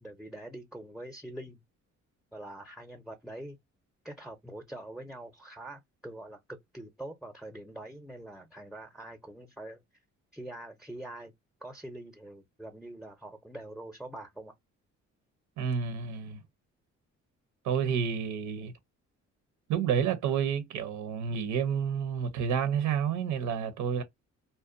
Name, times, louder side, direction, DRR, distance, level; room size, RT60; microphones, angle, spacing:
voice 1, 0.0-1.6 2.3-3.6 4.0-9.8 10.3-11.3 11.6-14.5, right 1 dB, ahead, 0.5 m, -44 dB
voice 2, 15.6-16.4 17.6-18.7 19.7-24.0, right 7 dB, 90° right, 0.6 m, -29 dB
2.5 x 2.1 x 2.4 m
cardioid pair, 90°, 30 cm